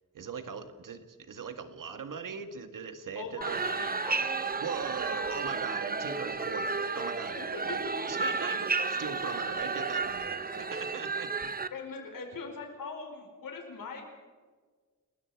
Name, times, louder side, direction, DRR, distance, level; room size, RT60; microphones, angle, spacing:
voice 1, 0.1-3.8 4.6-7.8 8.1-11.3, right 6 dB, 70° right, 8 dB, 2.0 m, -40 dB
voice 2, 3.1-4.5 7.3-8.1 11.7-14.1, left 4 dB, 80° left, 2 dB, 4.8 m, -41 dB
sound 1, 3.4-11.7, right 4 dB, 25° right, 1.0 m, -32 dB
30.0 x 20.5 x 4.9 m, 1.5 s
wide cardioid pair, 130°, 33 cm